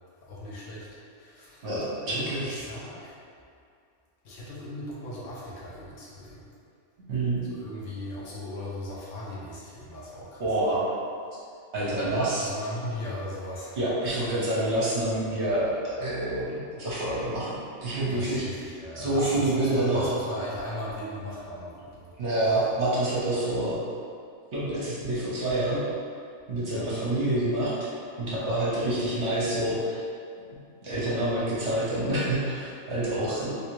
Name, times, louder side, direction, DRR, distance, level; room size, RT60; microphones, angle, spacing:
voice 1, 0.3-0.9 1.2-1.7 2.1-3.1 4.2-6.4 7.5-10.4 12.4-14.3 18.1-22.1 26.7-26.9 28.3-28.5, left 1 dB, 65° left, -6 dB, 1.1 m, -38 dB
voice 2, 1.6-2.6 7.1-7.4 10.4-10.8 11.7-12.5 13.8-17.5 17.8-18.7 18.9-20.2 22.2-23.8 24.5-25.8 26.5-27.9 28.2-30.0 30.8-33.5, right 1 dB, 55° right, -8 dB, 1.1 m, -27 dB
3.4 x 2.7 x 3.0 m, 2.4 s
omnidirectional pair, 1.5 m